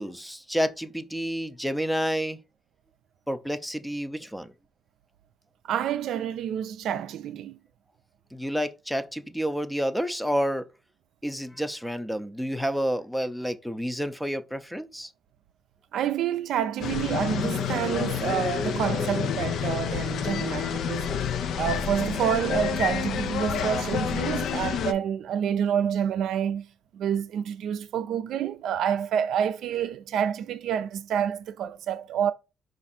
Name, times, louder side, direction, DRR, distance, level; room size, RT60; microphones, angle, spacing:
voice 1, 0.0-2.4 3.3-4.5 8.3-10.6 11.2-15.1, equal, ahead, 0.5 m, -29 dB
voice 2, 5.7-7.6 15.9-21.1 21.5-26.7 26.9-32.3, right 9 dB, 75° right, 0.4 m, -28 dB
sound 1, 16.8-24.9, left 7 dB, 75° left, 0.5 m, -28 dB
4.9 x 2.5 x 4.2 m
cardioid pair, 90°, 0 cm